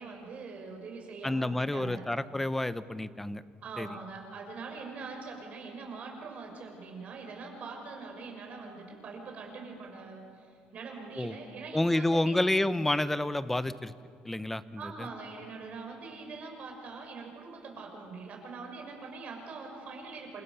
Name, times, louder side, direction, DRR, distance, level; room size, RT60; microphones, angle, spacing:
voice 1, 0.0-2.0 3.6-12.4 14.8-20.4, right 4 dB, 40° right, 2 dB, 6.5 m, -43 dB
voice 2, 1.2-3.4 3.8-4.0 11.2-11.4 11.7-13.9 14.2-15.1, left 1 dB, 5° left, 14 dB, 0.8 m, -29 dB
28.5 x 27.0 x 7.0 m, 2.2 s
cardioid pair, 145°, 3 cm